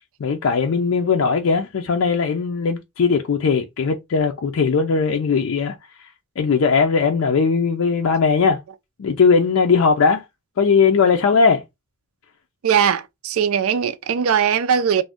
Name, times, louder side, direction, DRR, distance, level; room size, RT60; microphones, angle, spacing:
voice 1, 0.2-5.7 6.4-8.6 9.0-10.2 10.6-11.6, left 5 dB, 70° left, 0.4 m, -18 dB
voice 2, 12.6-15.0, right 7 dB, 75° right, 0.4 m, -19 dB
2.5 x 2.1 x 3.4 m
head